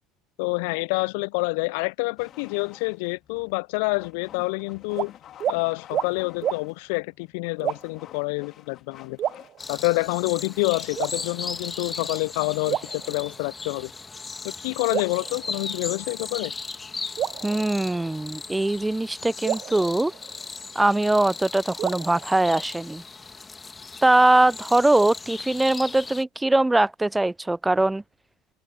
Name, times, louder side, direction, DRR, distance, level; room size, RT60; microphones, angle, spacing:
voice 1, 0.4-5.1 5.5-9.2 9.7-13.9 14.4-16.5, left 31 dB, 65° left, 0.7 m, -27 dB
sound 1, 2.2-13.2, left 11 dB, 45° left, 4.3 m, -50 dB
sound 2, 4.9-5.1 5.4-5.6 5.9-6.1 6.4-6.6 7.6-8.1 9.2-10.0 11.0-11.7 12.7-13.7 14.9-16.0 17.2-18.4 19.4-20.9 21.8-23.0, right 11 dB, 45° right, 0.7 m, -32 dB
sound 3, 9.6-26.2, left 4 dB, 20° left, 2.0 m, -37 dB
voice 2, 17.4-20.1 20.8-23.0 24.0-28.0, right 2 dB, 10° right, 0.6 m, -21 dB
open air
figure-of-eight pair, 70°, 0 cm